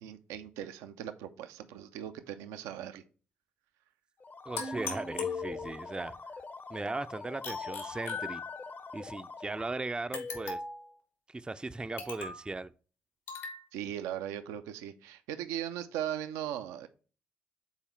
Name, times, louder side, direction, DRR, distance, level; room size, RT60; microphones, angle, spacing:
voice 1, 0.0-3.0 13.7-16.9, right 10 dB, 80° right, 0.5 m, -38 dB
sound 1, 4.2-9.9, left 3 dB, 40° left, 0.6 m, -45 dB
voice 2, 4.5-6.1 6.7-8.4 8.9-10.6 11.3-12.7, right 3 dB, 20° right, 0.4 m, -38 dB
sound 2, 4.6-6.0 7.4-8.9 10.1-10.9 12.0-12.5 13.3-13.6, left 4 dB, 85° left, 1.5 m, -38 dB
5.6 x 4.1 x 4.4 m
hypercardioid pair, 45°, 5 cm